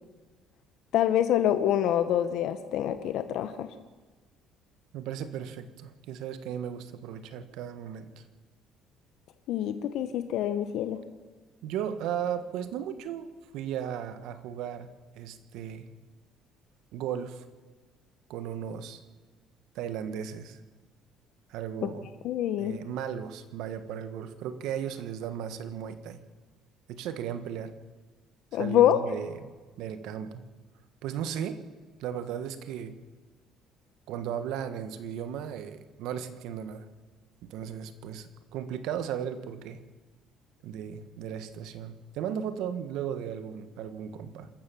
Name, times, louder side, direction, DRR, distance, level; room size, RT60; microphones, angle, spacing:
voice 1, 0.9-3.7 9.5-11.0 21.8-21.9 22.2-22.7 28.5-29.0, left 11 dB, 65° left, 10 dB, 1.0 m, -26 dB
voice 2, 4.9-8.2 11.6-14.9 15.1-15.9 16.9-17.4 18.3-19.0 19.7-20.6 21.5-22.1 22.6-26.2 26.9-27.7 28.5-29.5 29.8-30.4 31.0-31.6 32.0-33.0 34.1-36.9 37.4-39.8 40.6-44.5, right 9 dB, 75° right, 11 dB, 1.4 m, -36 dB
27.0 x 13.5 x 7.1 m, 1.3 s
cardioid pair, 140°, 0 cm